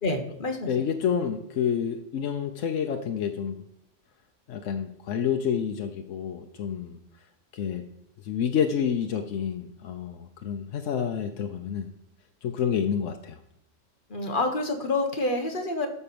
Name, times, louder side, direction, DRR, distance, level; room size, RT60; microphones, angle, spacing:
voice 1, 0.0-0.7 14.1-15.9, left 2 dB, 45° left, 4 dB, 1.5 m, -27 dB
voice 2, 0.7-3.6 4.5-7.0 7.5-7.8 8.2-11.9 12.4-13.4, left 8 dB, 85° left, 5 dB, 1.1 m, -29 dB
12.5 x 4.6 x 6.9 m, 0.77 s
omnidirectional pair, 1.3 m